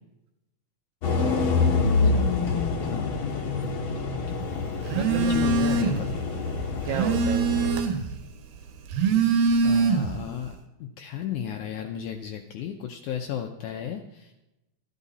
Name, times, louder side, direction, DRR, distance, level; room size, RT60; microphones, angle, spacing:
sound 1, 1.0-7.8, left 4 dB, 55° left, 1.4 m, -26 dB
voice 1, 1.2-1.9 2.8-3.1 4.3-4.7 5.3-6.2 9.6-14.4, left 9 dB, 80° left, 4 dB, 1.8 m, -35 dB
voice 2, 4.9-6.1 6.8-7.7, right 6 dB, 70° right, 3 dB, 1.9 m, -33 dB
Telephone, 4.9-6.1 6.5-8.2 8.8-10.3, right 4 dB, 90° right, 3.1 m, -23 dB
13.0 x 12.0 x 4.2 m, 0.97 s
omnidirectional pair, 4.2 m